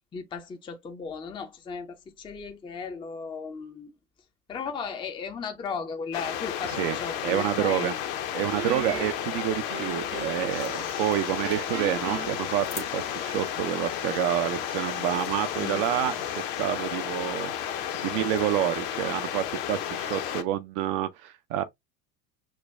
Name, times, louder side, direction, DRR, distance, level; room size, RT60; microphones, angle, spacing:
voice 1, 0.1-3.9 4.5-7.9 15.6-15.8, left 5 dB, 10° left, 0.5 m, -36 dB
forrest and river, 6.1-20.4, left 10 dB, 50° left, 0.8 m, -32 dB
voice 2, 6.6-7.0 7.2-7.9 8.3-21.6, right 12 dB, 40° right, 0.4 m, -28 dB
Guitar, 8.5-10.7 11.0-13.3, right 9 dB, 75° right, 0.8 m, -38 dB
sound 1, 10.5-16.5, left 6 dB, 75° left, 1.6 m, -45 dB
6.3 x 2.2 x 2.2 m
figure-of-eight pair, 75°, 50 cm